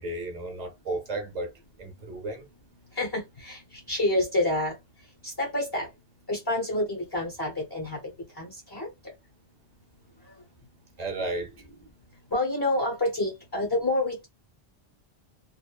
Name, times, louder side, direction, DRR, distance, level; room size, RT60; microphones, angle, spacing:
voice 1, 0.0-1.5 1.8-2.5 11.0-11.5, right 2 dB, 45° right, 0.8 m, -33 dB
voice 2, 3.0-3.6 3.9-4.7 5.2-5.9 6.3-8.0 8.4-8.9 12.3-14.3, left 1 dB, 25° left, 0.8 m, -28 dB
2.9 x 2.1 x 2.3 m
omnidirectional pair, 1.1 m